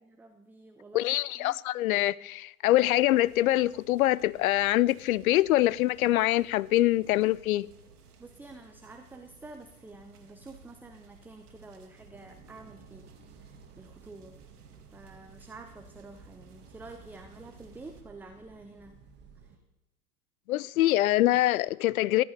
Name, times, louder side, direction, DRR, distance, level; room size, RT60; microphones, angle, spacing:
voice 1, 0.0-1.6 8.2-13.1 13.3-14.4 14.9-19.0 19.4-19.6, right 3 dB, 5° right, 0.5 m, -49 dB
voice 2, 0.9-7.7 20.5-22.2, left 15 dB, 60° left, 0.5 m, -24 dB
sound 1, 2.8-18.0, right 4 dB, 70° right, 2.0 m, -56 dB
sound 2, 12.1-19.6, right 5 dB, 20° right, 1.7 m, -56 dB
15.0 x 10.5 x 5.3 m
figure-of-eight pair, 95°, 47 cm